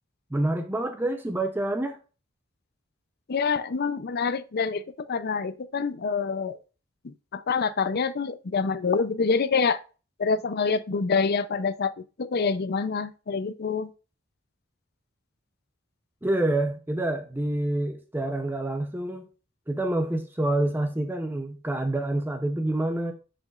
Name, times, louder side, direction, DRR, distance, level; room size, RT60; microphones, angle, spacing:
voice 1, 0.3-2.0 16.2-19.3 19.7-23.1, right 1 dB, 10° right, 0.6 m, -27 dB
voice 2, 3.3-6.6 7.0-9.8 10.2-13.9, left 5 dB, 50° left, 0.5 m, -26 dB
10.5 x 5.1 x 2.4 m
head